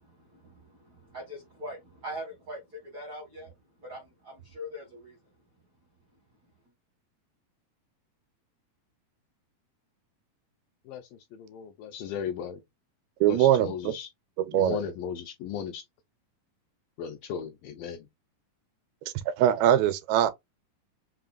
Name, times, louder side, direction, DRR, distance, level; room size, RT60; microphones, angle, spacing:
voice 1, 0.0-3.5 3.8-5.2, equal, 75° right, 0.9 m, -42 dB
voice 2, 10.9-12.6 13.3-14.1 14.5-15.8 17.0-18.1, left 8 dB, 80° left, 2.2 m, -36 dB
voice 3, 13.2-13.9 14.4-14.8 19.3-20.3, right 11 dB, 90° right, 2.5 m, -22 dB
5.6 x 2.3 x 2.4 m
omnidirectional pair, 4.2 m